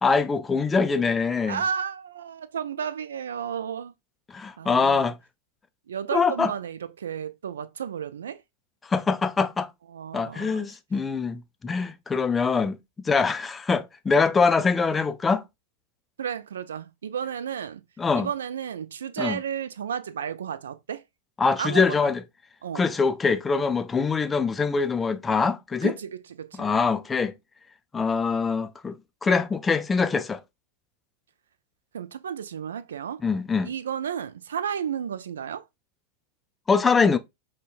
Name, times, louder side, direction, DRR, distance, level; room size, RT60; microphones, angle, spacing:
voice 1, 0.0-1.6 4.3-5.2 6.1-6.5 8.9-9.7 10.1-12.8 13.0-15.4 18.0-18.3 19.2-19.4 21.4-22.2 22.7-25.9 26.6-27.3 27.9-29.0 29.2-30.4 33.2-33.7 36.7-37.2, left 5 dB, 15° left, 0.4 m, -23 dB
voice 2, 1.4-3.9 4.6-5.1 5.9-8.4 9.9-10.8 16.2-17.8 18.1-21.0 21.6-22.1 22.6-22.9 25.8-26.1 26.4-26.7 31.9-33.2 33.6-35.6, right 8 dB, 65° right, 0.3 m, -32 dB
5.2 x 2.2 x 2.3 m
figure-of-eight pair, 90°, 0 cm